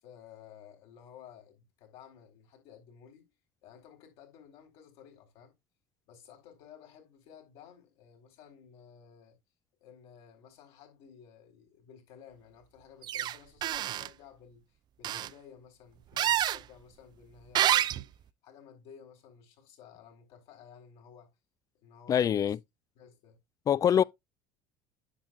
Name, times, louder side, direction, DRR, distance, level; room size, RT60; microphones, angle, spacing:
voice 1, 0.0-3.3 3.6-5.5 6.1-9.4 9.8-18.1 18.4-21.3 21.8-22.6 22.9-23.4 23.9-24.1, left 8 dB, 65° left, 4.2 m, -54 dB
sound 1, 13.0-13.4 13.6-14.1 15.0-15.3 16.2-16.6 17.5-18.0, right 12 dB, 45° right, 0.4 m, -27 dB
voice 2, 22.1-22.6 23.7-24.0, left 9 dB, 35° left, 0.4 m, -24 dB
9.8 x 7.3 x 2.4 m
hypercardioid pair, 75°, 10 cm